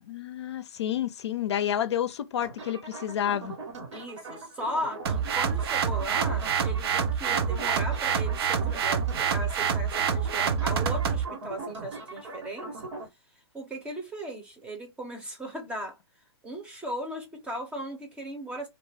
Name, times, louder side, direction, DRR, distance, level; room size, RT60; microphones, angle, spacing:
voice 1, 0.0-3.6, left 10 dB, 75° left, 0.5 m, -30 dB
sound 1, 2.4-13.1, right 3 dB, 90° right, 1.3 m, -40 dB
voice 2, 3.9-12.8 13.5-16.0 16.4-18.7, equal, 10° right, 0.6 m, -37 dB
sound 2, 5.1-11.3, right 7 dB, 60° right, 0.5 m, -27 dB
2.4 x 2.3 x 3.3 m
hypercardioid pair, 155°, 14 cm